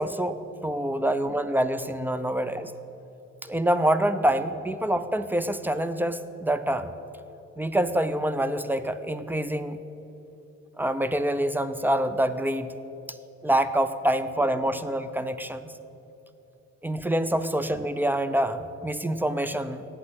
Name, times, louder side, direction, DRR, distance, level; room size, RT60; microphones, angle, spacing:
voice 1, 0.0-2.7 3.4-6.9 7.6-9.8 10.8-12.7 13.4-15.7 16.8-19.9, right 1 dB, 5° right, 11 dB, 0.5 m, -26 dB
8.4 x 7.5 x 8.8 m, 2.9 s
cardioid pair, 90°, 30 cm